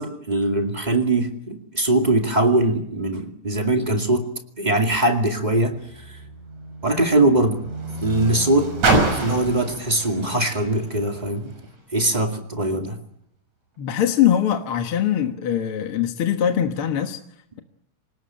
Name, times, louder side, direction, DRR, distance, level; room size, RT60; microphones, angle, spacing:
voice 1, 0.0-4.3 4.6-5.7 6.8-7.6 8.0-8.7 9.1-11.5 11.9-13.0, right 2 dB, 15° right, 4 dB, 2.0 m, -21 dB
Car, 5.6-11.8 12.6-12.7, right 2 dB, 65° right, 7.5 m, -28 dB
voice 2, 13.8-17.2, left 10 dB, 55° left, 6 dB, 2.0 m, -22 dB
27.5 x 19.0 x 8.8 m, 0.72 s
omnidirectional pair, 3.6 m